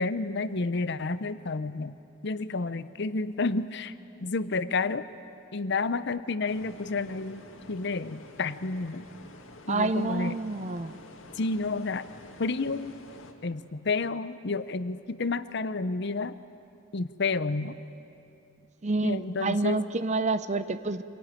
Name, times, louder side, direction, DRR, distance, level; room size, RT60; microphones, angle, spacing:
voice 1, 0.0-2.0 2.2-3.9 4.2-5.0 5.5-9.1 9.7-10.3 11.4-12.1 12.4-12.9 13.4-16.4 16.9-17.8 19.0-19.8, left 3 dB, 60° left, 14 dB, 0.7 m, -30 dB
sound 1, 6.4-13.3, left 2 dB, 85° left, 2.2 m, -49 dB
voice 2, 9.7-10.9 18.8-21.0, right 3 dB, 35° right, 13 dB, 0.7 m, -28 dB
26.5 x 18.5 x 9.9 m, 2.7 s
head